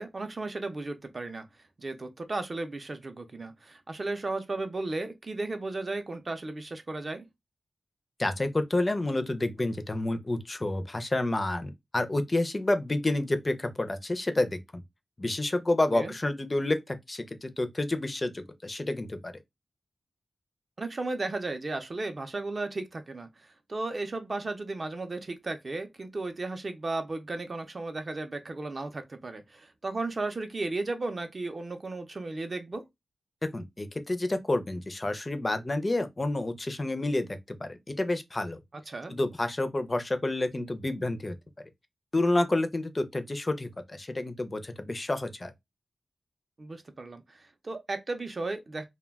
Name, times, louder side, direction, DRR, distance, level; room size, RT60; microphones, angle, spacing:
voice 1, 0.0-1.5 1.8-7.2 15.9-16.1 20.8-32.8 38.9-39.1 46.6-48.9, right 2 dB, 40° right, 0.5 m, -35 dB
voice 2, 8.2-14.8 15.2-19.3 33.4-38.6 39.1-41.4 42.1-45.5, left 2 dB, 25° left, 0.4 m, -29 dB
2.2 x 2.1 x 3.3 m
wide cardioid pair, 120°, 0 cm